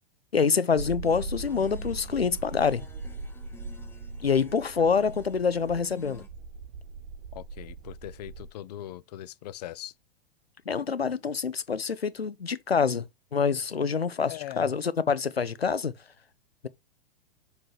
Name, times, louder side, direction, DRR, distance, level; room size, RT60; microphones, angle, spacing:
voice 1, 0.3-2.8 4.2-6.2 10.7-15.9, left 6 dB, 80° left, 0.7 m, -26 dB
sound 1, 0.8-8.5, right 3 dB, 40° right, 1.0 m, -40 dB
sound 2, 1.0-6.3, left 3 dB, 10° left, 0.7 m, -51 dB
voice 2, 7.3-9.9 14.3-14.7, left 12 dB, 45° left, 0.4 m, -40 dB
7.4 x 3.3 x 4.4 m
figure-of-eight pair, 100°, 30 cm